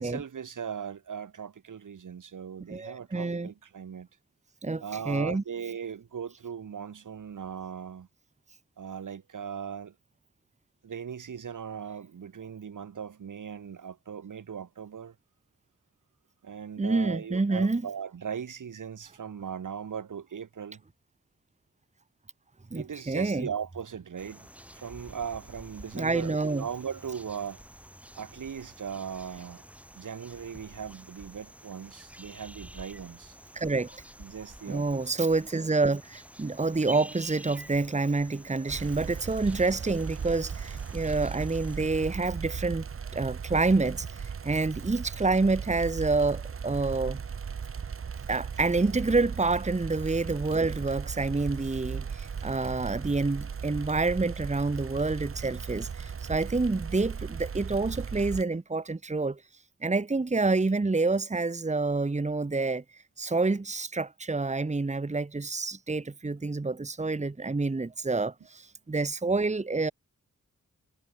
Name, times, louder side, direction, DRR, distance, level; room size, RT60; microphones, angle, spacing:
voice 1, 0.0-4.1 4.8-8.1 8.8-9.9 10.8-15.1 16.4-20.8 22.7-24.5 24.7-27.6 28.2-29.6 29.9-33.4 34.2-35.0, right 7 dB, 75° right, 2.4 m, -38 dB
voice 2, 2.7-3.5 4.6-5.4 16.8-17.8 22.7-23.5 25.9-26.7 33.5-34.0 34.7-42.9 43.1-47.2 48.3-59.4 59.8-62.8 63.2-69.9, right 3 dB, 20° right, 1.6 m, -28 dB
sound 1, 24.2-41.8, equal, 5° right, 6.4 m, -49 dB
sound 2, 38.7-58.4, right 6 dB, 45° right, 0.9 m, -37 dB
wide cardioid pair, 105°, 31 cm